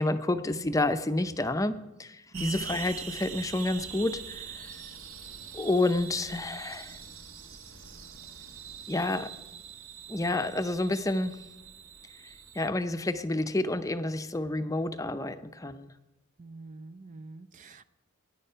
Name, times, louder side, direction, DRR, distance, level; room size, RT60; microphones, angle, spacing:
voice 1, 0.0-4.7 5.5-7.0 8.9-9.3 10.1-11.4 12.2-15.9, left 2 dB, 15° left, 9 dB, 0.6 m, -29 dB
sound 1, 2.3-12.7, right 7 dB, 65° right, 1.4 m, -43 dB
voice 2, 16.4-17.8, right 3 dB, 35° right, 12 dB, 0.4 m, -42 dB
20.5 x 10.0 x 5.6 m, 1.0 s
head